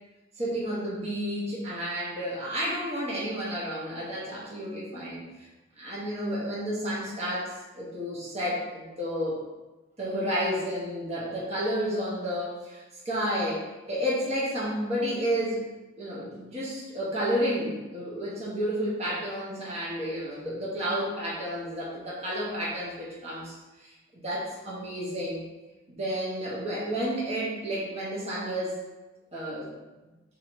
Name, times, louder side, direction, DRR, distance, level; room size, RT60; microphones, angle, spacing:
voice 1, 0.4-5.2 5.8-9.5 10.0-15.6 16.0-25.4 25.9-28.8 29.3-29.7, equal, 30° right, -7 dB, 1.0 m, -31 dB
3.8 x 2.8 x 4.5 m, 1.1 s
head